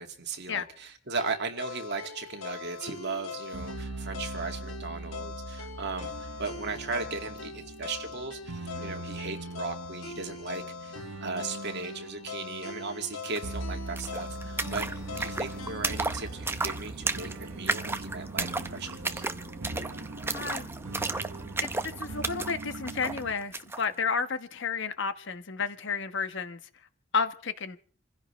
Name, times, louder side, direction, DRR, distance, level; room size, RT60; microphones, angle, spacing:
voice 1, 0.0-14.9 15.2-19.2, right 4 dB, 55° right, 2.2 m, -37 dB
sound 1, 1.2-17.3, left 5 dB, 90° left, 1.7 m, -42 dB
sound 2, 3.5-23.3, right 3 dB, 85° right, 1.1 m, -41 dB
sound 3, 13.4-13.5 13.7-23.9, right 3 dB, 10° right, 0.7 m, -34 dB
voice 2, 20.3-20.7 21.6-26.6 27.1-27.8, left 5 dB, 60° left, 1.2 m, -32 dB
27.5 x 16.0 x 3.3 m
head